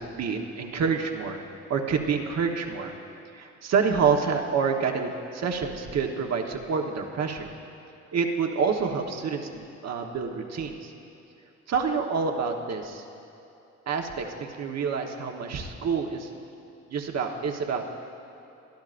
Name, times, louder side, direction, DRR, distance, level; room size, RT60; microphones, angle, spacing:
voice 1, 0.0-1.4 1.7-2.9 3.3-7.5 8.1-10.9 11.7-13.0 13.9-16.3 16.9-17.9, right 5 dB, 60° right, 3 dB, 1.3 m, -28 dB
23.5 x 12.0 x 2.6 m, 2.9 s
cardioid pair, 90°, 30 cm